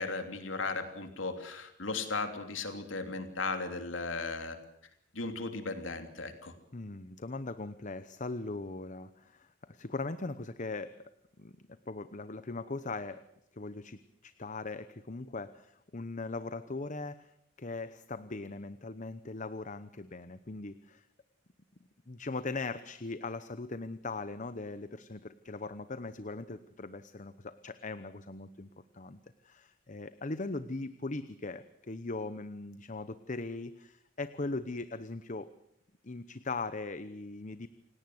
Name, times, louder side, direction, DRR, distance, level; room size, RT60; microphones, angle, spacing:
voice 1, 0.0-4.6 5.1-6.5, left 3 dB, 85° left, 7 dB, 3.1 m, -36 dB
voice 2, 6.7-11.0 11.4-13.2 13.5-17.3 17.6-21.1 22.1-29.2 29.4-35.5 36.0-37.7, left 3 dB, 40° left, 13 dB, 0.9 m, -40 dB
28.0 x 17.5 x 7.9 m, 0.75 s
head